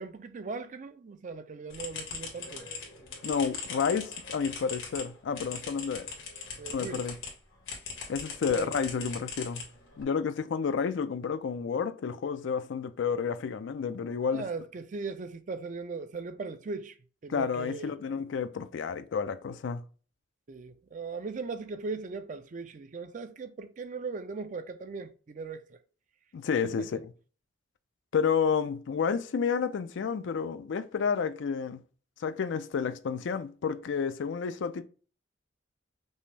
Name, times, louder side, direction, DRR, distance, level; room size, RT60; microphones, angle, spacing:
voice 1, 0.0-2.7 6.6-7.0 8.4-8.7 14.3-16.9 17.2-17.9 20.5-25.8 26.6-26.9, right 4 dB, 40° right, 0.4 m, -39 dB
sound 1, 1.7-7.3 7.7-10.0, left 5 dB, 85° left, 1.5 m, -40 dB
voice 2, 3.2-6.1 6.7-7.2 8.1-9.6 10.0-14.5 17.3-19.8 26.3-26.8 28.1-31.8 32.2-34.8, left 6 dB, 70° left, 0.4 m, -30 dB
5.3 x 2.0 x 3.2 m
head